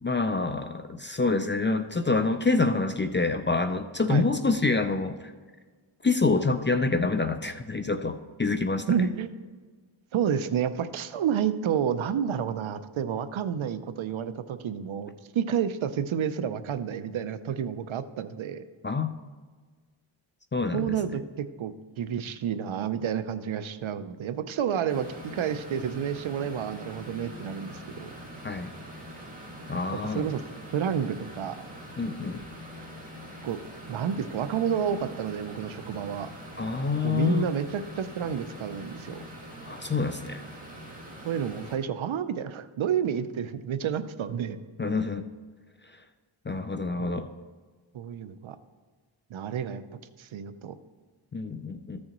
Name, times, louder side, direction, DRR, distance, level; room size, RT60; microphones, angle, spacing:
voice 1, 0.0-5.3 6.0-8.9 18.8-19.1 20.5-20.9 28.4-28.7 29.7-30.3 32.0-32.4 36.6-37.5 39.6-40.4 44.8-45.3 46.5-47.3 51.3-52.0, left 3 dB, 25° left, 8 dB, 0.3 m, -27 dB
voice 2, 8.9-9.3 10.1-18.6 20.7-28.1 30.0-30.4 30.7-31.6 33.4-33.6 33.9-36.3 37.0-39.2 41.2-44.6 47.0-47.1 47.9-48.6 49.3-50.8, right 8 dB, 70° right, 12 dB, 0.6 m, -30 dB
sound 1, 24.9-41.7, equal, 15° right, 2.2 m, -44 dB
14.0 x 6.4 x 3.0 m, 1.5 s
wide cardioid pair, 100°, 50 cm